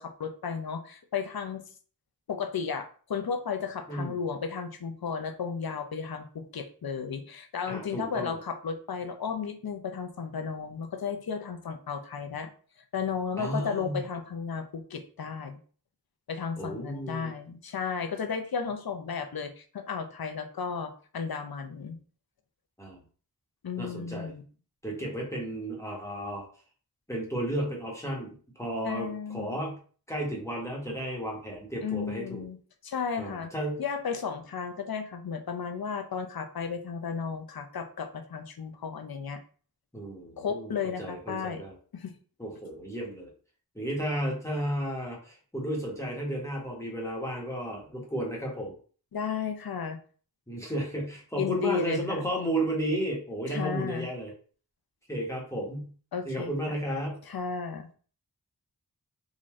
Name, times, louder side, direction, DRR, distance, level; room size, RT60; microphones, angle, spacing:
voice 1, 0.0-1.6 2.3-12.5 12.9-15.6 16.3-22.0 23.6-24.4 28.8-29.6 31.8-32.6 32.8-33.5 33.8-39.4 40.4-41.6 41.9-42.1 49.1-50.0 51.4-52.2 53.5-54.1 56.1-56.5 57.3-57.9, left 6 dB, 70° left, 7 dB, 0.6 m, -34 dB
voice 2, 3.9-4.2 7.7-8.4 13.4-14.0 16.6-17.3 22.8-23.0 23.8-24.3 24.8-26.4 27.1-29.8 30.1-32.4 33.2-33.8 39.9-40.7 41.0-41.7 42.4-43.3 43.7-48.7 50.5-54.3 55.1-55.9 56.2-57.2, right 1 dB, 10° left, -3 dB, 1.3 m, -33 dB
3.7 x 2.6 x 3.1 m, 0.42 s
wide cardioid pair, 55°, 37 cm